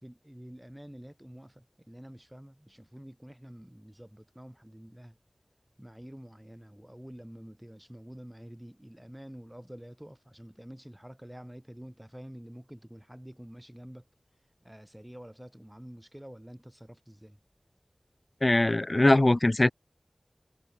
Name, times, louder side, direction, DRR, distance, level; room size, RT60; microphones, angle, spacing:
voice 1, 0.0-5.2 5.8-14.1 14.6-17.4, equal, 10° right, 3.5 m, -48 dB
voice 2, 18.4-19.7, left 2 dB, 45° left, 0.5 m, -21 dB
wide cardioid pair, 40°, 0 cm